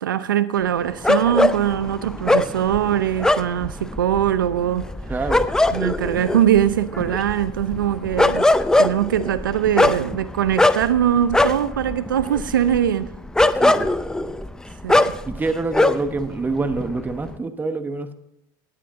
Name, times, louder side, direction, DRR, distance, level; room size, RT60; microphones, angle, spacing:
voice 1, 0.0-4.9 5.7-8.5 8.8-13.1 14.8-15.1, right 10 dB, 90° right, 13 dB, 0.6 m, -21 dB
sound 1, 1.0-16.3 16.5-17.3, left 2 dB, 5° left, 0.6 m, -21 dB
voice 2, 5.1-5.5 13.6-13.9 15.3-18.1, right 3 dB, 15° right, 10 dB, 1.1 m, -26 dB
16.5 x 9.4 x 3.7 m, 0.81 s
hypercardioid pair, 90°, 11 cm